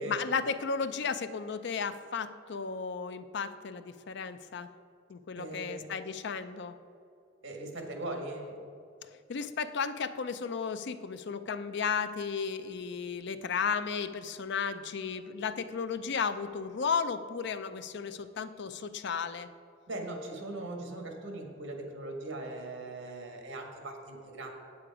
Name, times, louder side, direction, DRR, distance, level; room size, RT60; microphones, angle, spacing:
voice 1, 0.0-4.7 5.1-6.8 9.3-19.5, left 5 dB, 60° left, 11 dB, 0.5 m, -34 dB
voice 2, 5.4-5.9 7.4-8.6 19.9-24.5, right 2 dB, 80° right, 2 dB, 1.7 m, -39 dB
8.6 x 8.4 x 4.9 m, 2.6 s
head